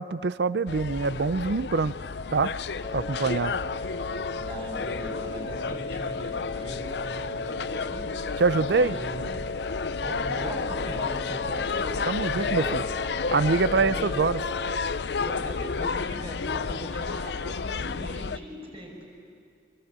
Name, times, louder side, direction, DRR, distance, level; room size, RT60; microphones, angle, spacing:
voice 1, 0.0-1.9 2.3-2.5 2.9-3.5 8.4-9.0 12.1-12.8 13.3-14.4, right 4 dB, 70° right, 17 dB, 0.6 m, -24 dB
sound 1, 0.7-18.4, left 5 dB, 70° left, 0.6 m, -32 dB
sound 2, 2.8-14.8, left 3 dB, 35° left, 1.4 m, -36 dB
voice 2, 4.4-8.1 8.6-9.5 10.0-12.0 12.3-12.8 13.7-14.1 15.2-19.1, right 1 dB, 35° right, 0 dB, 6.0 m, -39 dB
26.0 x 24.0 x 8.8 m, 2.4 s
head